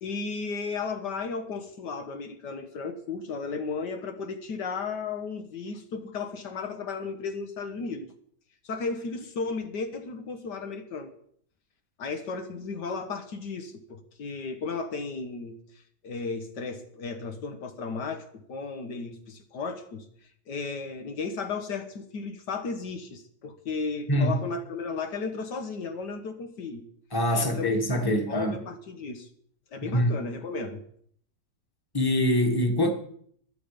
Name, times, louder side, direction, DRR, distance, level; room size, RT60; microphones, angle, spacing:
voice 1, 0.0-8.1 8.6-11.1 12.0-15.6 16.0-20.1 20.5-26.9 27.3-27.7 28.1-29.3 29.7-30.8, left 4 dB, 70° left, 1.8 m, -34 dB
voice 2, 24.1-24.4 27.1-28.6 29.8-30.1 31.9-32.9, equal, 15° left, 1.7 m, -24 dB
21.5 x 7.4 x 5.2 m
omnidirectional pair, 1.9 m